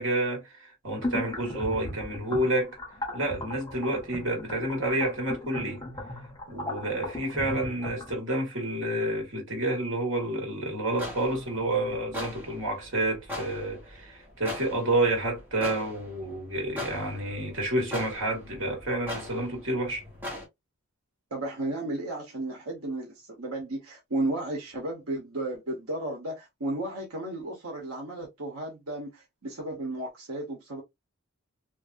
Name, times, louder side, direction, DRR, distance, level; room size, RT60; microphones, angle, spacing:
voice 1, 0.0-2.8 3.1-5.8 6.5-20.0, right 1 dB, 60° right, 1.5 m, -29 dB
sound 1, 1.0-8.2, left 1 dB, 20° left, 0.7 m, -37 dB
sound 2, 10.9-20.5, left 1 dB, 10° right, 1.2 m, -40 dB
voice 2, 21.3-30.8, right 1 dB, 80° right, 1.0 m, -34 dB
3.1 x 2.6 x 2.5 m
head